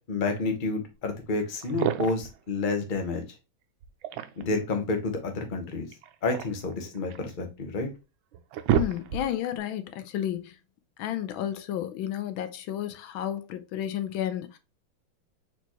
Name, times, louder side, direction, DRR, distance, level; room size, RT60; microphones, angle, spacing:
voice 1, 0.1-3.2 4.4-5.9 6.2-7.9, left 3 dB, 35° left, 0.9 m, -29 dB
sound 1, 1.6-2.4 3.8-4.6 5.9-7.3 7.9-8.0 8.3-9.5, right 10 dB, 80° right, 1.4 m, -30 dB
voice 2, 8.7-10.6 11.0-14.6, left 11 dB, 85° left, 1.4 m, -32 dB
4.4 x 4.1 x 2.9 m
omnidirectional pair, 2.2 m